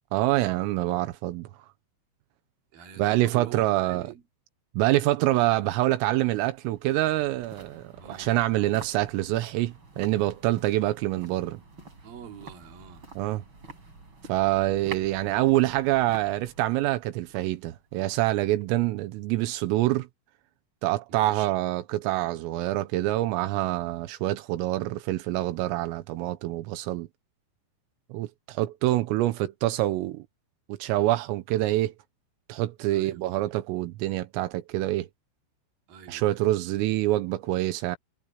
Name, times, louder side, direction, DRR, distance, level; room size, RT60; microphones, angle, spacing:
voice 1, 0.1-1.5 3.0-4.1 4.8-11.6 13.2-13.4 14.3-20.1 20.8-27.1 28.1-30.2 30.7-31.9 32.5-35.1 36.1-38.0, right 16 dB, 85° right, 3.6 m, -26 dB
voice 2, 2.7-4.2 7.9-8.4 12.0-13.1 21.1-21.5 32.9-33.6 35.9-36.5, right 8 dB, 50° right, 4.1 m, -45 dB
sound 1, 5.7-18.9 19.2-19.3, right 4 dB, 25° right, 5.8 m, -48 dB
omnidirectional pair, 5.9 m